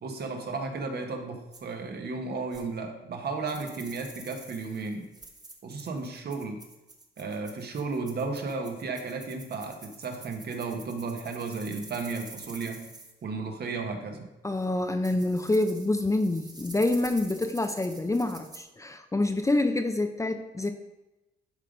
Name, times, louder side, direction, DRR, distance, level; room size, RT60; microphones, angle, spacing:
voice 1, 0.0-5.1 5.6-6.6 7.2-12.9 13.2-14.3, right 4 dB, 55° right, 3 dB, 1.4 m, -34 dB
sound 1, 1.5-1.6 2.5-2.6 3.5-13.1 14.6-14.7 15.0-18.6, right 2 dB, 20° right, 1.2 m, -48 dB
voice 2, 14.4-20.7, left 2 dB, 15° left, 7 dB, 0.7 m, -27 dB
11.0 x 3.8 x 5.1 m, 1.0 s
cardioid pair, 90°, 20 cm